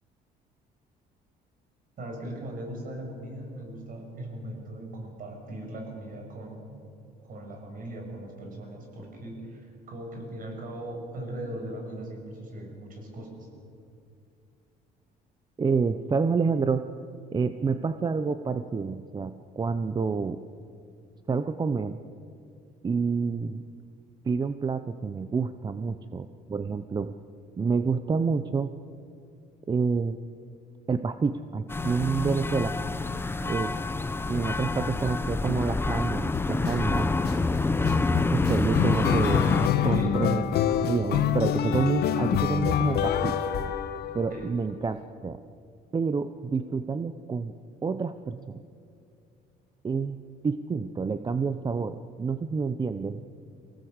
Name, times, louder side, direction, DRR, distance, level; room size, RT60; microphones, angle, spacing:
voice 1, 2.0-6.8 7.3-9.6 9.9-13.3 39.8-40.2 44.3-44.5, right 1 dB, 55° right, 2 dB, 6.6 m, -39 dB
voice 2, 15.6-16.9 17.3-20.4 21.3-22.0 22.8-23.6 24.2-27.1 27.6-28.7 29.7-30.2 30.9-32.7 33.4-33.7 34.3-37.1 38.3-39.4 39.8-40.4 40.8-43.4 44.1-45.0 45.2-45.4 45.9-47.5 47.8-48.6 49.8-53.2, right 5 dB, 25° right, 11 dB, 0.7 m, -28 dB
sound 1, 31.7-39.7, left 3 dB, 15° left, 0.8 m, -27 dB
sound 2, 36.3-36.7 37.2-44.4, left 9 dB, 70° left, 1.3 m, -26 dB
24.0 x 17.5 x 8.1 m, 2.4 s
cardioid pair, 110°, 17 cm